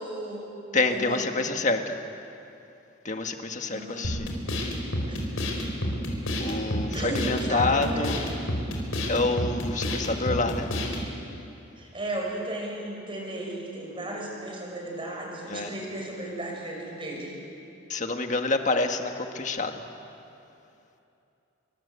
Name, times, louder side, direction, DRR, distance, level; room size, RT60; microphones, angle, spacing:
voice 1, 0.0-1.3 3.7-4.1 4.6-4.8 5.1-5.3 6.3-6.6 6.9-8.1 11.8-17.4, right 1 dB, 25° right, -1 dB, 6.3 m, -35 dB
voice 2, 0.7-2.0 3.0-4.3 6.4-8.3 9.1-10.7 15.5-15.7 17.9-19.8, left 3 dB, 35° left, 5 dB, 1.7 m, -27 dB
sound 1, 4.0-11.1, equal, 85° left, 4.8 m, -30 dB
27.5 x 24.5 x 8.3 m, 2.8 s
head